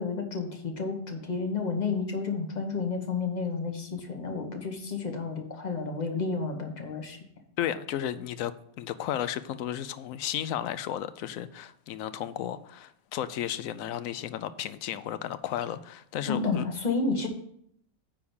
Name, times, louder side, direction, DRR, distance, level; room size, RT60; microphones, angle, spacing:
voice 1, 0.0-7.2 16.3-17.3, left 4 dB, 30° left, 3 dB, 1.2 m, -31 dB
voice 2, 7.6-8.5 8.8-16.6, left 11 dB, 75° left, 14 dB, 1.0 m, -33 dB
9.5 x 3.6 x 7.0 m, 0.70 s
omnidirectional pair, 1.5 m